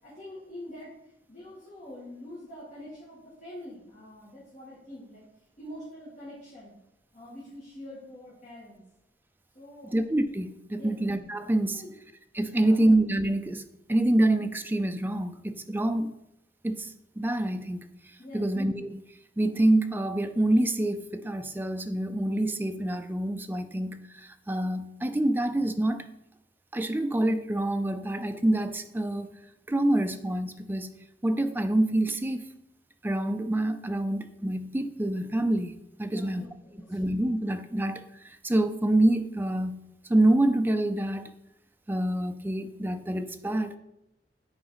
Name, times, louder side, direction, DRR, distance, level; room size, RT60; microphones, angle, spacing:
voice 1, 0.0-0.9 1.3-5.2 5.6-6.7 7.1-8.8 9.5-10.0 10.7-11.0 11.7-11.9 12.5-12.9 18.2-18.5 36.1-37.0, left 1 dB, 45° left, -9 dB, 2.2 m, -45 dB
voice 2, 9.9-11.8 12.3-13.6 13.9-16.1 16.6-17.8 18.3-19.0 19.4-26.1 26.7-29.3 29.7-31.0 31.2-32.5 33.0-36.5 36.9-39.8 40.1-41.3 41.9-43.8, right 1 dB, 10° right, 8 dB, 0.4 m, -26 dB
7.9 x 4.8 x 4.0 m, 0.84 s
head